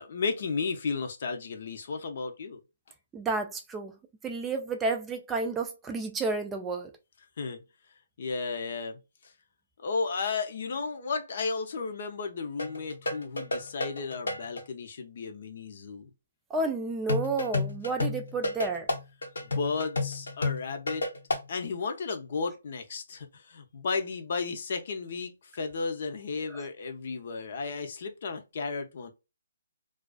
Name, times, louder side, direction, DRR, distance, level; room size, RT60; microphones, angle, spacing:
voice 1, 0.0-2.6 7.4-7.6 8.2-9.3 9.8-16.1 19.4-21.1 21.5-29.1, left 4 dB, 55° left, 0.6 m, -34 dB
voice 2, 3.1-3.9 4.2-6.9 16.5-18.9 26.5-26.6, right 3 dB, 10° right, 0.3 m, -31 dB
sound 1, 12.6-14.6 17.1-21.5, left 2 dB, 85° left, 0.8 m, -30 dB
2.4 x 2.3 x 2.2 m
hypercardioid pair, 155°, 0 cm